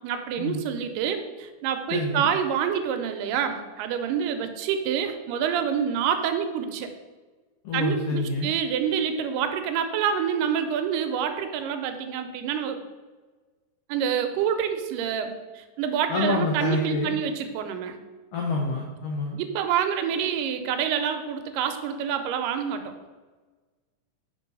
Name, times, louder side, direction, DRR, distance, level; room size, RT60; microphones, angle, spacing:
voice 1, 0.0-6.9 7.7-12.8 13.9-18.0 19.4-22.9, right 8 dB, 90° right, 7 dB, 2.3 m, -27 dB
voice 2, 1.9-2.3 7.6-8.5 16.1-17.2 18.3-19.4, left 3 dB, 90° left, -1 dB, 1.3 m, -27 dB
5.9 x 3.8 x 5.3 m, 1.3 s
omnidirectional pair, 3.7 m